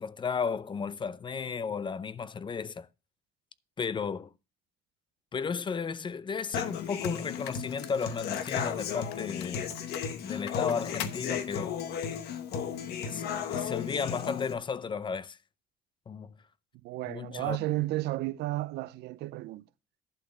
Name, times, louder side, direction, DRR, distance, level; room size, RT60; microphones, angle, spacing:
voice 1, 0.0-2.9 3.8-4.3 5.3-9.7 10.2-11.7 13.1-15.4 16.1-16.3 17.1-17.6, left 6 dB, 30° left, 0.6 m, -34 dB
sound 1, 6.4-6.5 7.0-8.7 9.1-11.2, left 11 dB, 90° left, 1.0 m, -43 dB
Human voice / Acoustic guitar, 6.5-14.5, left 7 dB, 70° left, 1.6 m, -35 dB
voice 2, 16.8-19.6, right 18 dB, 75° right, 0.6 m, -33 dB
11.5 x 4.2 x 7.6 m
cardioid pair, 110°, 17 cm